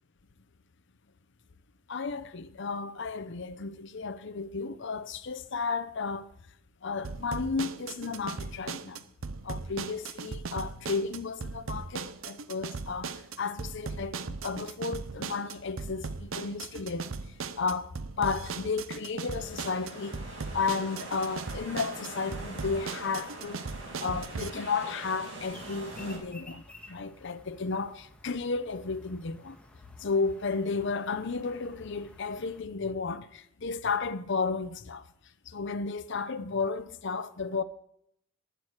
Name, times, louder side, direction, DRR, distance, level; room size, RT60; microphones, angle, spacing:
voice 1, 1.9-6.3 6.8-9.0 9.4-17.1 17.6-20.2 20.5-23.6 24.0-29.6 30.0-35.0 35.5-37.6, left 4 dB, 65° left, 0.7 m, -33 dB
sound 1, 7.0-24.5, right 4 dB, 90° right, 0.7 m, -38 dB
sound 2, 19.3-26.2, right 2 dB, 70° right, 6.5 m, -43 dB
sound 3, 25.4-32.6, left 2 dB, 5° left, 1.7 m, -54 dB
12.5 x 9.2 x 6.5 m
head